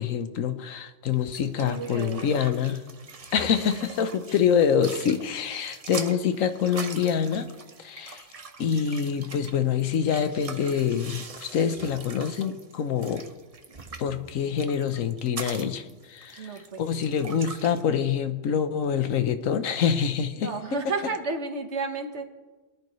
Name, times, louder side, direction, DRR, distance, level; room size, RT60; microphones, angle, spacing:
voice 1, 0.0-2.8 3.3-7.5 7.8-8.2 8.6-13.2 14.0-16.5 16.8-20.5, left 7 dB, 85° left, 10 dB, 1.2 m, -26 dB
sound 1, 1.1-17.8, right 4 dB, 35° right, 0.7 m, -42 dB
voice 2, 1.6-2.5 16.4-17.4 20.3-22.2, right 4 dB, 60° right, 5 dB, 1.5 m, -33 dB
21.5 x 11.0 x 3.1 m, 1.2 s
omnidirectional pair, 1.3 m